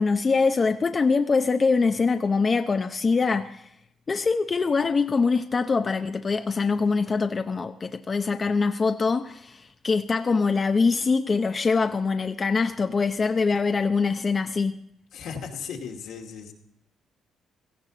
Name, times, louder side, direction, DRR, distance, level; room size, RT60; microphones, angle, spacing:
voice 1, 0.0-3.7 4.1-14.8, left 4 dB, 35° left, 0.7 m, -23 dB
voice 2, 15.1-16.5, left 6 dB, 80° left, 2.5 m, -36 dB
17.0 x 15.0 x 4.0 m
cardioid pair, 90°, 0 cm